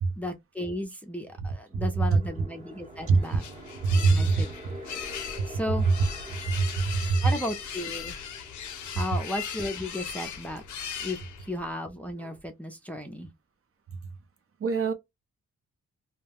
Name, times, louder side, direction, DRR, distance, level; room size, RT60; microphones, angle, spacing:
voice 1, 0.2-3.4 3.9-4.5 4.9-5.0 5.5-5.9 7.2-8.2 9.0-10.6 11.0-11.2 11.4-13.3, left 1 dB, 5° left, 0.5 m, -34 dB
sound 1, 1.7-12.4, right 1 dB, 20° right, 0.8 m, -48 dB
sound 2, 2.8-11.7, left 7 dB, 75° left, 0.6 m, -39 dB
voice 2, 3.8-4.3 6.5-7.2 14.6-14.9, right 4 dB, 50° right, 0.6 m, -23 dB
2.2 x 2.1 x 3.3 m
cardioid pair, 100°, 30 cm